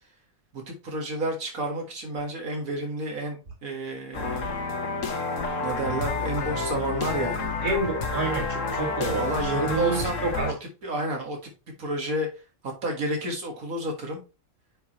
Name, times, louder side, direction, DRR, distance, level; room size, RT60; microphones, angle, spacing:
voice 1, 0.5-4.5 5.6-7.5 9.1-10.5 10.8-11.5 11.8-12.3 12.8-14.2, right 1 dB, 85° right, 2 dB, 2.1 m, -30 dB
sound 1, 4.1-10.5, left 3 dB, 65° left, 1.6 m, -29 dB
voice 2, 7.6-10.5, right 2 dB, 35° right, 0 dB, 2.4 m, -29 dB
9.1 x 4.7 x 2.9 m, 0.30 s
omnidirectional pair, 1.4 m